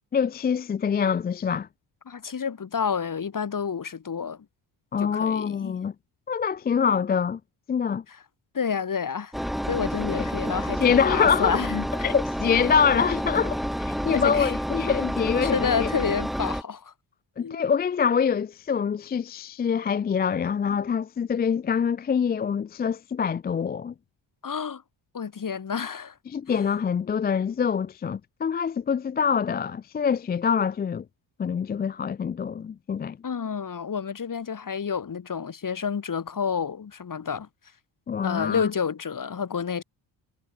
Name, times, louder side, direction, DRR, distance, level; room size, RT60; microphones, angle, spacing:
voice 1, 0.1-1.7 4.9-5.9 6.3-7.4 7.7-8.0 10.1-10.3 10.8-11.6 12.0-15.9 17.4-23.9 26.3-31.0 31.4-33.2 38.1-38.7, left 7 dB, 25° left, 0.3 m, -25 dB
voice 2, 2.1-4.4 5.0-5.8 8.1-8.2 8.5-9.3 9.7-11.9 14.1-14.6 15.4-16.9 17.4-17.6 24.4-24.8 25.1-26.2 26.5-26.7 33.2-37.5 38.2-39.8, left 6 dB, 40° left, 3.3 m, -29 dB
Engine, 9.3-16.6, equal, ahead, 1.0 m, -29 dB
cardioid pair, 85°, 49 cm